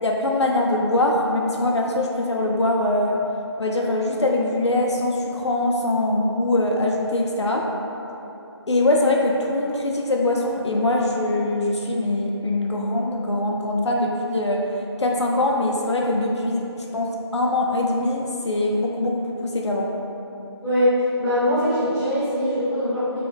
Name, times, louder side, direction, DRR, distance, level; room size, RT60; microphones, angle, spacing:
voice 1, 0.0-3.2 3.6-7.7 8.7-14.7 15.0-19.9, left 2 dB, 75° left, -1 dB, 0.6 m, -22 dB
voice 2, 21.2-23.2, equal, 10° right, -19 dB, 1.1 m, -22 dB
3.7 x 3.3 x 3.4 m, 2.9 s
figure-of-eight pair, 170°, 15 cm